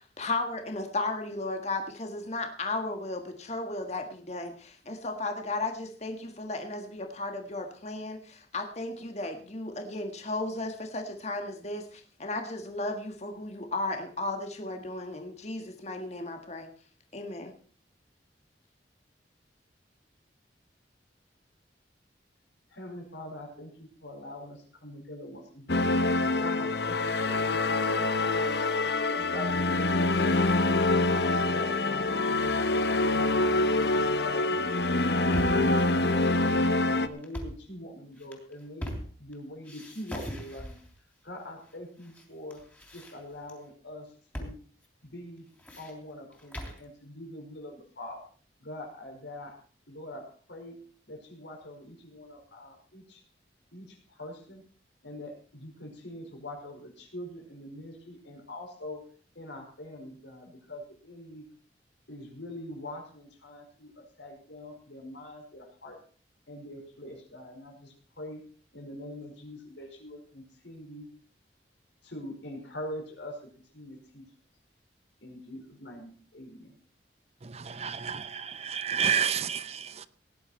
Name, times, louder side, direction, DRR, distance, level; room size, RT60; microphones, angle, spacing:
voice 1, 0.0-16.7 17.1-17.5, left 2 dB, 40° left, 1.6 m, -35 dB
voice 2, 22.7-26.0 26.3-30.6 31.1-33.5 33.7-34.5 35.0-40.8 41.2-42.6 42.9-44.6 45.0-45.5 45.8-48.2 48.6-49.6 49.9-50.8 51.1-53.2 53.7-54.6 55.0-59.0 59.3-61.4 62.1-66.0 66.5-68.4 68.7-71.1 72.0-74.2 75.2-76.7, left 1 dB, 85° left, 5.0 m, -43 dB
sound 1, 25.7-37.1, left 2 dB, 65° left, 1.0 m, -25 dB
sound 2, 35.3-35.7 37.2-37.6 38.2-39.3 39.6-40.9 41.7-42.2 42.5-43.5 44.3-44.6 44.8-44.9 45.4-46.8, equal, 10° left, 3.3 m, -40 dB
voice 3, 77.4-80.1, right 8 dB, 35° right, 0.6 m, -30 dB
18.0 x 11.0 x 4.4 m
head